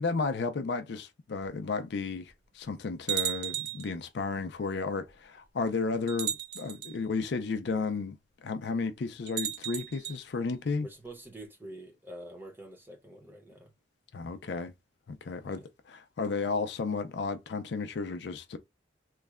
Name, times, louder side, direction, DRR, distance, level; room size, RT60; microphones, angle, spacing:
voice 1, 0.0-10.9 14.1-14.7 15.1-18.6, left 4 dB, 65° left, 0.4 m, -33 dB
sound 1, 1.4-1.5 2.3-2.4 3.1-3.9 5.1-5.2 6.1-6.9 9.3-10.2, right 10 dB, 60° right, 0.6 m, -34 dB
voice 2, 10.8-13.7 15.4-15.7, right 1 dB, 10° right, 0.8 m, -46 dB
3.1 x 2.2 x 3.5 m
head